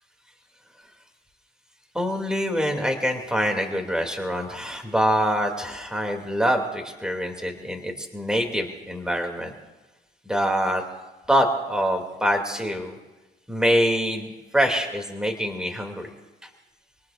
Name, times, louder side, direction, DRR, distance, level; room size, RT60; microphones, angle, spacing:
voice 1, 1.9-9.5 10.2-10.8 11.3-13.0 13.5-14.3 14.5-16.1, equal, 5° right, 3 dB, 2.6 m, -25 dB
26.5 x 19.0 x 2.5 m, 1.1 s
cardioid pair, 90°, 20 cm